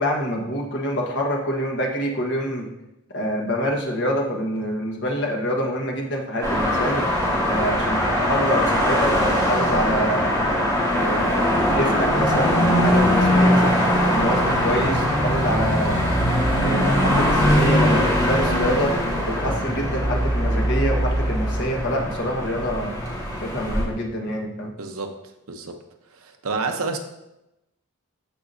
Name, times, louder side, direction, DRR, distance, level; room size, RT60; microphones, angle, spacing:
voice 1, 0.0-2.7 3.1-7.0 7.5-10.3 10.8-16.0 16.5-18.9 19.2-22.9 23.4-24.7, equal, 50° left, 0 dB, 1.4 m, -26 dB
sound 1, 6.4-23.8, equal, 15° left, 2.4 m, -21 dB
voice 2, 24.8-25.2 25.5-25.8 26.1-27.0, right 4 dB, 75° right, 4 dB, 0.9 m, -29 dB
14.0 x 5.0 x 2.7 m, 0.91 s
head